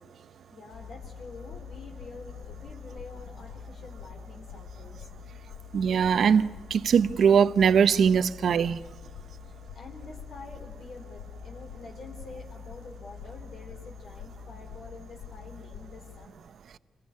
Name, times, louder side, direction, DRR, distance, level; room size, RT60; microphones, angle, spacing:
voice 1, 0.5-5.0 9.4-16.5, left 3 dB, 55° left, 3.7 m, -47 dB
sound 1, 0.7-16.3, left 7 dB, 85° left, 1.3 m, -45 dB
voice 2, 5.7-8.8, right 7 dB, 55° right, 0.8 m, -21 dB
27.5 x 22.0 x 9.5 m
wide cardioid pair, 155°, 0 cm